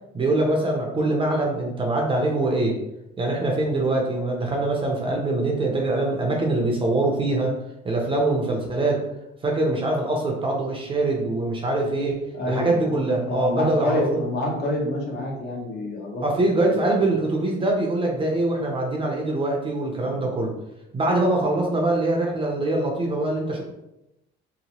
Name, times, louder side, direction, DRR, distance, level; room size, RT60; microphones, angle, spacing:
voice 1, 0.1-2.8 3.2-7.5 7.8-9.0 9.4-14.2 16.2-20.5 20.9-23.6, right 2 dB, 25° right, 0 dB, 0.5 m, -23 dB
voice 2, 12.3-12.9 13.3-17.1 20.1-20.3, left 1 dB, 50° left, -1 dB, 0.8 m, -28 dB
2.9 x 2.0 x 2.8 m, 0.88 s
cardioid pair, 110°, 21 cm